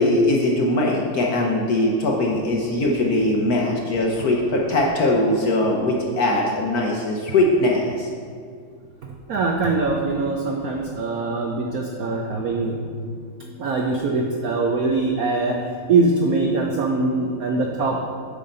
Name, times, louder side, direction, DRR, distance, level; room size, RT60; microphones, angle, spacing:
voice 1, 0.0-8.1, left 1 dB, 65° left, -1 dB, 1.0 m, -21 dB
voice 2, 9.3-12.9 13.4-18.1, right 3 dB, 85° right, 1 dB, 0.7 m, -23 dB
8.5 x 5.6 x 3.9 m, 2.1 s
omnidirectional pair, 2.3 m